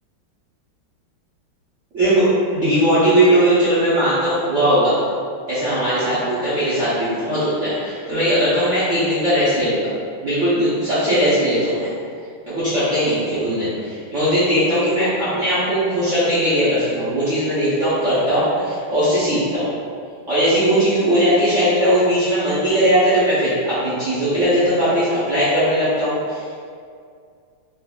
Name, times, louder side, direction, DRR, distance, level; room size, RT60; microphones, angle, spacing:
voice 1, 1.9-2.3 2.5-5.0 5.5-9.9 10.2-11.9 12.5-19.7 20.3-26.4, equal, 60° right, -13 dB, 0.8 m, -19 dB
4.0 x 2.6 x 2.3 m, 2.2 s
omnidirectional pair, 2.3 m